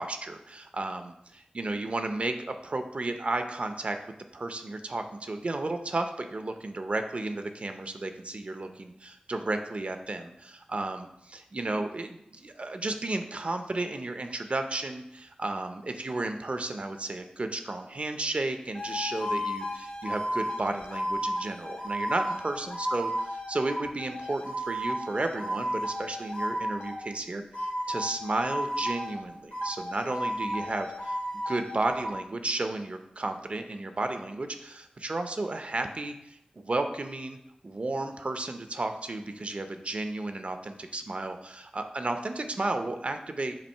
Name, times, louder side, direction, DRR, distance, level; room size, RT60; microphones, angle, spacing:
voice 1, 0.0-4.0 4.3-31.2 31.5-37.4 37.6-43.6, right 2 dB, 50° right, 7 dB, 0.6 m, -33 dB
sound 1, 18.7-27.0 27.5-29.2 29.5-32.1, equal, 70° left, 1.8 m, -33 dB
7.4 x 2.6 x 5.4 m, 0.82 s
wide cardioid pair, 65°, 3 cm